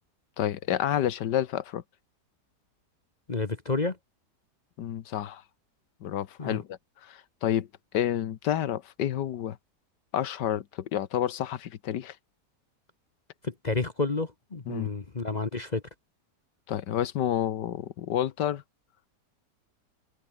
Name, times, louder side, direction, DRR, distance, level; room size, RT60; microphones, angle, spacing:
voice 1, 0.4-1.8 4.8-5.4 6.0-6.8 7.1-7.7 7.9-9.6 10.1-12.1 14.7-14.9 16.7-18.6, left 10 dB, 80° left, 1.6 m, -29 dB
voice 2, 3.3-4.0 6.4-6.6 13.4-15.8, left 3 dB, 30° left, 1.1 m, -30 dB
omnidirectional pair, 1.8 m